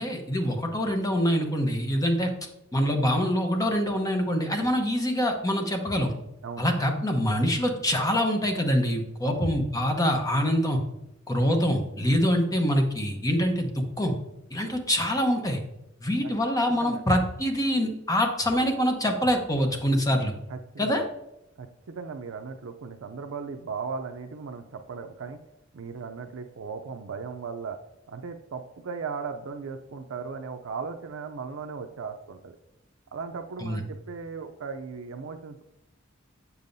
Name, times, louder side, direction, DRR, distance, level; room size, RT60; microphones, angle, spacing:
voice 1, 0.0-2.3 2.7-6.1 6.6-10.8 11.3-14.1 14.5-15.6 16.0-20.3 20.8-21.0 33.6-33.8, equal, 20° left, 4 dB, 0.9 m, -25 dB
voice 2, 20.5-21.0 21.6-25.4 25.7-27.8 28.1-32.6 33.1-35.6, right 5 dB, 75° right, 6 dB, 0.5 m, -37 dB
8.0 x 7.0 x 2.6 m, 0.88 s
head